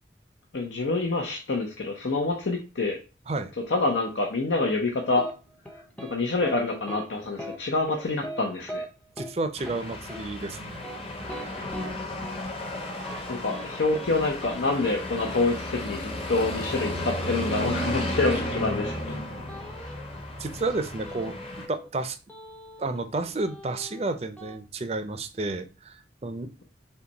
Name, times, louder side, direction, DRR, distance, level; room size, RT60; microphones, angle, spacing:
voice 1, 0.5-3.0 3.7-5.3 6.1-8.8 13.3-19.2, left 3 dB, 80° left, 1 dB, 0.8 m, -27 dB
sound 1, 5.1-5.3 5.6-6.1 6.4-6.6 6.9-7.1 7.4-7.6 7.9-8.4 8.7-8.9 9.2-9.3 9.7-9.8 10.1-10.2 10.7-11.9 12.2-12.4 12.7-13.2 13.5-13.7 13.9-14.1 14.4-14.6 16.7-17.5 19.5-20.2 21.1-21.9 22.3-23.1 23.4-24.6, equal, 5° left, 0.6 m, -40 dB
voice 2, 9.2-10.8 11.2-11.6 20.4-22.2 22.8-26.6, right 2 dB, 35° right, 9 dB, 0.5 m, -31 dB
sound 2, 9.6-21.7, left 1 dB, 30° left, 0.9 m, -34 dB
5.7 x 2.3 x 3.9 m, 0.33 s
head